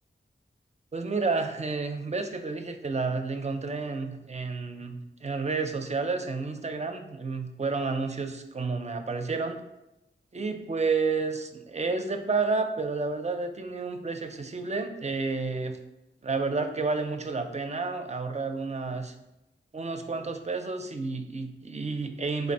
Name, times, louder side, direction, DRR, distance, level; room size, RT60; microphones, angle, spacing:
voice 1, 0.9-9.6 10.3-15.8 16.2-19.1 19.7-22.5, right 4 dB, 35° right, 6 dB, 0.4 m, -30 dB
3.9 x 2.5 x 4.1 m, 0.92 s
wide cardioid pair, 85°, 20 cm